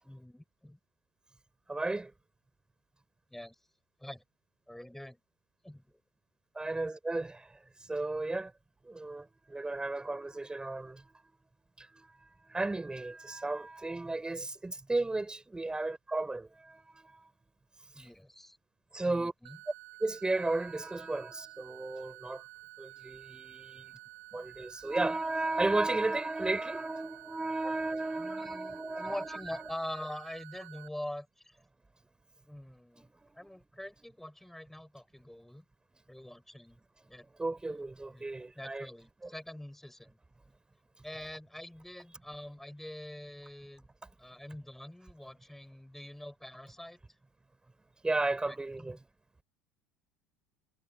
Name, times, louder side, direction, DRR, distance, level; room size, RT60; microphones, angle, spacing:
voice 1, 0.0-0.8 3.3-3.6 4.0-4.2 4.7-5.2 5.6-6.0 17.9-18.6 19.0-19.6 23.7-23.9 24.3-24.5 27.6-27.7 28.1-31.6 32.4-35.6 36.1-36.8 37.1-37.3 38.1-38.2 38.6-40.2 41.0-43.9 44.2-47.0 48.4-49.0, left 1 dB, 5° left, 7.9 m, -45 dB
voice 2, 1.7-2.1 6.5-7.6 7.9-8.5 8.8-11.0 11.8-12.1 12.5-17.2 18.0-18.1 18.9-19.3 20.0-22.4 22.8-23.9 24.3-29.4 33.2-33.3 37.4-38.9 48.0-49.0, right 2 dB, 10° right, 6.7 m, -34 dB
sound 1, 19.5-30.9, right 18 dB, 65° right, 4.7 m, -51 dB
hypercardioid pair, 75°, 7 cm